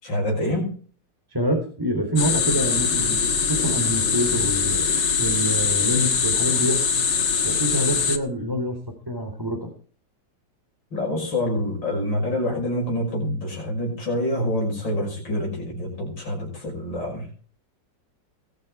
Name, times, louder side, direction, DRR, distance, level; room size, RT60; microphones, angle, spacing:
voice 1, 0.0-0.8 10.9-17.3, left 1 dB, 90° left, -1 dB, 6.8 m, -26 dB
voice 2, 1.3-3.2 3.5-4.9 5.2-6.8 7.4-8.8 9.1-9.7, equal, 10° right, 3 dB, 4.0 m, -26 dB
sound 1, 2.2-8.2, left 6 dB, 70° left, 2.4 m, -22 dB
19.0 x 13.0 x 4.7 m, 0.42 s
omnidirectional pair, 2.0 m